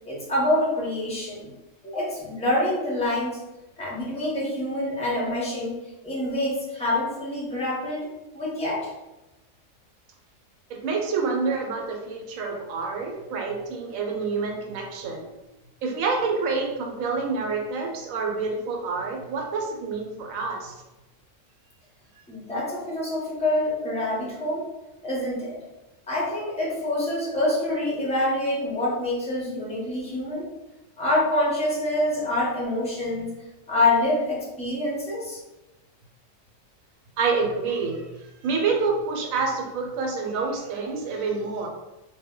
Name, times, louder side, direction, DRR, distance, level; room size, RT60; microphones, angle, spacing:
voice 1, 0.1-1.5 1.8-3.4 3.8-5.8 6.0-8.1 8.3-8.9 22.3-24.6 25.0-25.6 26.1-30.4 31.0-33.3 33.7-35.4, left 1 dB, 10° left, -5 dB, 0.3 m, -26 dB
voice 2, 10.7-15.3 15.8-20.8 37.2-38.0 38.4-41.7, right 4 dB, 85° right, 1 dB, 1.0 m, -27 dB
2.1 x 2.1 x 3.5 m, 1.0 s
omnidirectional pair, 1.4 m